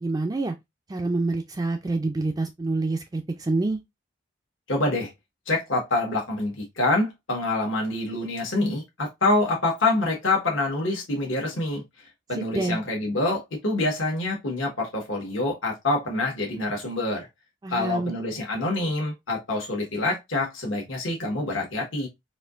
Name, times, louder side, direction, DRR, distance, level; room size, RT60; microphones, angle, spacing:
voice 1, 0.0-0.5 0.9-3.8 12.4-12.8 17.6-18.1, right 2 dB, 20° right, 0.3 m, -27 dB
voice 2, 4.7-5.1 5.5-11.8 12.3-17.3 17.7-22.1, left 2 dB, 80° left, 1.2 m, -26 dB
4.2 x 2.7 x 2.4 m
head